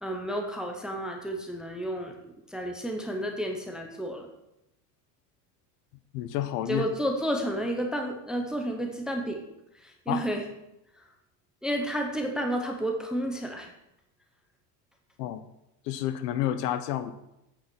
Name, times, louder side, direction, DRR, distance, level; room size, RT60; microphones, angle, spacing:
voice 1, 0.0-4.3 6.7-9.4 9.7-10.4 11.0-11.1 11.6-13.7, equal, ahead, 2 dB, 0.5 m, -31 dB
voice 2, 6.1-6.9 10.1-10.3 15.2-15.4 15.8-17.1, left 12 dB, 90° left, 11 dB, 1.1 m, -29 dB
8.5 x 5.8 x 6.0 m, 0.88 s
cardioid pair, 165°, 47 cm